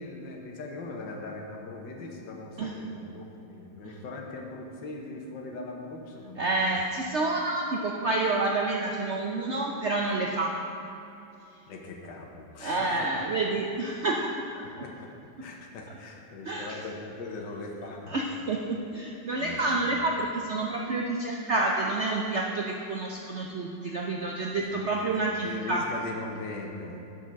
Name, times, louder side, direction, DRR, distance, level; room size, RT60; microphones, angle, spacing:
voice 1, 0.0-6.8 11.7-13.1 14.6-15.1 15.4-18.2 19.4-20.0 24.5-25.0 25.4-27.0, left 3 dB, 75° left, 1 dB, 1.8 m, -40 dB
voice 2, 6.4-10.5 12.6-14.2 14.5-14.6 16.5-16.8 18.1-25.8, right 2 dB, 65° right, -1 dB, 0.7 m, -29 dB
10.5 x 6.1 x 6.4 m, 2.8 s
omnidirectional pair, 2.0 m